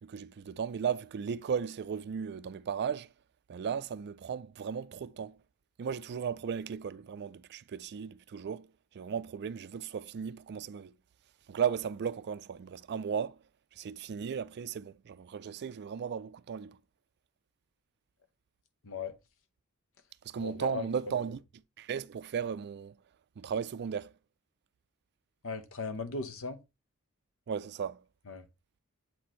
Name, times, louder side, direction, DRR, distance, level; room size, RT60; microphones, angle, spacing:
voice 1, 0.0-3.1 3.5-5.4 5.8-8.7 8.9-10.9 11.5-13.4 13.8-16.8 20.2-21.4 21.8-23.0 23.4-24.1 27.5-28.0, right 7 dB, 50° right, 0.4 m, -35 dB
voice 2, 18.8-19.2 20.4-20.8 25.4-26.6 28.3-28.5, left 4 dB, 65° left, 0.9 m, -37 dB
7.8 x 4.3 x 3.1 m
head